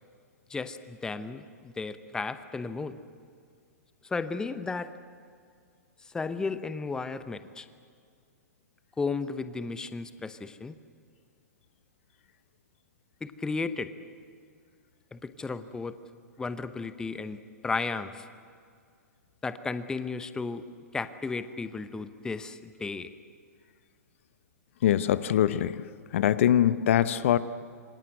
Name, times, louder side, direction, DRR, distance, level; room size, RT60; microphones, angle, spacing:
voice 1, 0.5-3.0 4.0-4.9 6.0-7.7 9.0-10.7 13.2-13.9 15.1-16.0 16.4-17.4 17.6-18.3 19.4-20.6 20.9-23.1, left 4 dB, 10° left, 13 dB, 0.9 m, -34 dB
voice 2, 24.8-25.8 26.1-27.4, left 11 dB, 50° left, 15 dB, 0.9 m, -23 dB
27.0 x 25.0 x 8.0 m, 2.2 s
figure-of-eight pair, 110°, 9 cm